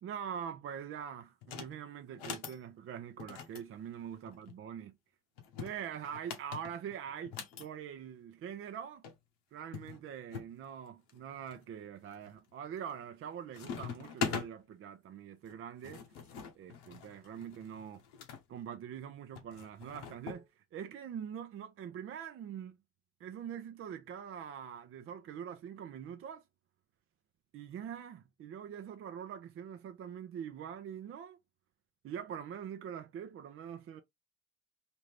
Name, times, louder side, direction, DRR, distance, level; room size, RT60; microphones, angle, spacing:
voice 1, 0.0-4.9 5.6-9.1 9.5-16.0 16.5-18.0 18.5-22.8 23.2-26.4 27.5-31.4 32.0-34.0, right 8 dB, 45° right, 0.6 m, -44 dB
sound 1, 1.4-1.7 2.1-2.6 3.2-4.6 5.4-7.7 8.7-8.8 9.0-9.1 9.7-10.5 11.1-11.6 12.1-12.5 12.8-13.3 13.5-14.5 15.5-18.4 19.4-20.4, left 6 dB, 85° left, 0.8 m, -42 dB
2.9 x 2.6 x 3.2 m
supercardioid pair, 70°, 30 cm